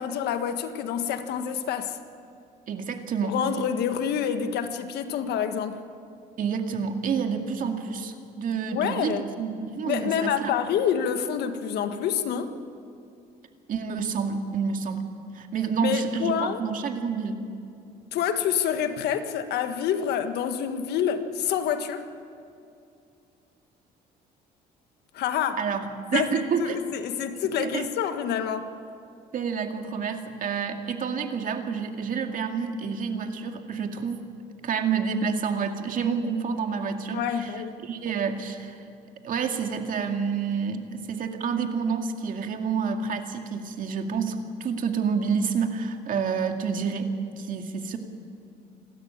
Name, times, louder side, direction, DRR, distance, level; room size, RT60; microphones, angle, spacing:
voice 1, 0.0-2.0 3.2-5.8 8.7-9.2 9.9-12.5 15.8-16.6 18.1-22.1 25.1-25.6 26.1-28.7 37.1-37.7, left 8 dB, 75° left, 8 dB, 1.6 m, -27 dB
voice 2, 2.7-3.4 6.4-10.5 13.7-15.0 15.3-17.5 25.6-26.8 27.3-27.9 29.3-34.2 34.6-37.6 37.8-38.8 39.2-48.0, right 6 dB, 55° right, 5 dB, 2.2 m, -29 dB
28.5 x 13.0 x 8.7 m, 2.5 s
cardioid pair, 110°, 17 cm